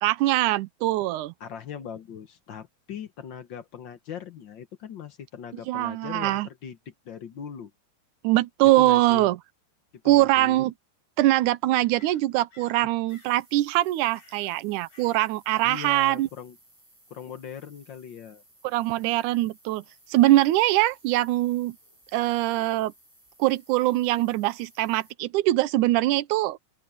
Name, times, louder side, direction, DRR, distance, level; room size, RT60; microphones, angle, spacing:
voice 1, 0.0-1.3 5.7-6.5 8.2-9.4 10.1-10.7 11.2-16.3 18.6-19.8 20.1-21.8 22.1-22.9 23.4-26.6, right 16 dB, 85° right, 2.2 m, -22 dB
voice 2, 1.4-7.7 8.6-9.3 10.0-10.6 15.6-16.6 17.1-18.4, left 8 dB, 60° left, 1.2 m, -40 dB
sound 1, 9.9-10.0 12.0-12.8 13.1-13.4 14.1-14.6 14.9-15.4 15.6-16.1, left 4 dB, 80° left, 8.2 m, -55 dB
sound 2, 13.1-25.1, right 1 dB, 10° right, 5.3 m, -59 dB
open air
omnidirectional pair, 3.6 m